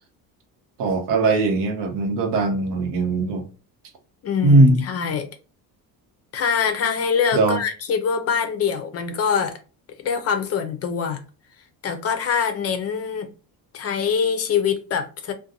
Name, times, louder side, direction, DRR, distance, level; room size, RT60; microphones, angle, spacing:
voice 1, 0.8-3.4 4.4-4.8 7.3-7.6, right 2 dB, 85° right, 0.9 m, -19 dB
voice 2, 4.2-5.3 6.3-9.6 10.0-11.2 11.8-13.3 13.7-15.3, left 6 dB, 40° left, 0.4 m, -24 dB
2.6 x 2.2 x 2.6 m
cardioid pair, 145°, 41 cm